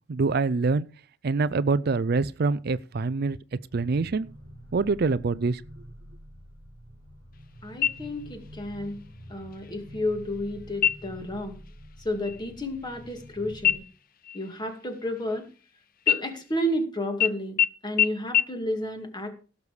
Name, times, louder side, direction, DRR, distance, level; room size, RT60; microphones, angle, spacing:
voice 1, 0.1-0.9 1.2-3.4 3.7-4.3 4.7-5.6, right 4 dB, 55° right, 0.5 m, -25 dB
sound 1, 3.7-13.8, equal, 80° left, 3.8 m, -47 dB
voice 2, 7.6-9.0 9.3-11.6 12.0-13.8 14.3-15.5 16.1-19.3, left 1 dB, 25° left, 2.3 m, -31 dB
sound 2, 7.8-8.5 8.9-9.0 9.5-10.0 10.7-11.3 11.7-11.9 12.2-13.3 13.6-15.6 16.0-16.8 17.2-17.3 17.6-17.7 18.0-18.1 18.3-18.4, left 9 dB, 50° left, 0.6 m, -26 dB
17.0 x 6.8 x 4.9 m
head